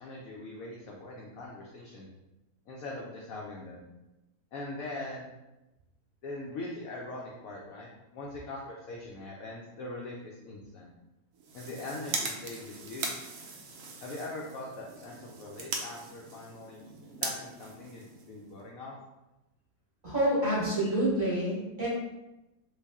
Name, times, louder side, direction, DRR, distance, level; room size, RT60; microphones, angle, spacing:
voice 1, 0.0-2.1 2.7-3.9 4.5-5.3 6.2-10.9 11.5-13.3 14.0-16.8 17.2-19.0, left 2 dB, 75° left, -2 dB, 0.7 m, -41 dB
sound 1, 11.3-18.6, right 4 dB, 75° right, 0.7 m, -40 dB
voice 2, 20.0-21.9, right 1 dB, 35° right, -9 dB, 0.9 m, -27 dB
3.3 x 2.3 x 3.4 m, 1.0 s
omnidirectional pair, 2.0 m